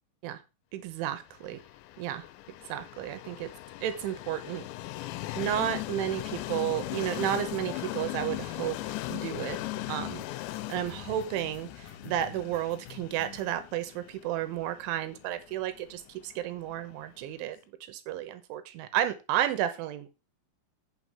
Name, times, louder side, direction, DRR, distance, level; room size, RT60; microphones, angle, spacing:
voice 1, 0.7-1.6 2.0-2.3 2.7-3.5 3.8-4.7 5.4-8.8 9.1-9.6 9.9-10.2 10.7-20.1, right 11 dB, 80° right, 11 dB, 3.4 m, -32 dB
Train, 1.4-17.2, left 17 dB, 85° left, 2.7 m, -39 dB
sound 1, 2.7-2.9 3.2-3.3 3.5-3.6 3.8-3.9 4.2-13.5, left 8 dB, 55° left, 2.6 m, -50 dB
9.1 x 6.0 x 4.9 m, 0.28 s
omnidirectional pair, 5.5 m